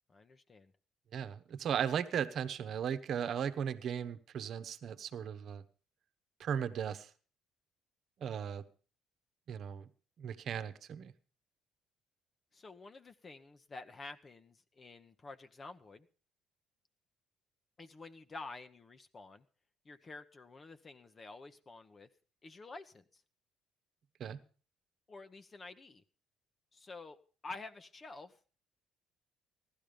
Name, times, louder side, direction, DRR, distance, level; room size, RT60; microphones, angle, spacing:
voice 1, 0.1-0.7 12.5-16.1 17.8-19.4 19.8-22.1 22.4-23.2 25.1-26.0 26.7-28.4, left 3 dB, 35° left, 1.1 m, -50 dB
voice 2, 1.1-5.6 6.4-7.1 8.2-8.6 9.5-9.9 10.2-11.1 24.2-24.4, right 8 dB, 60° right, 1.0 m, -36 dB
15.0 x 12.0 x 5.2 m
supercardioid pair, 65°, 0 cm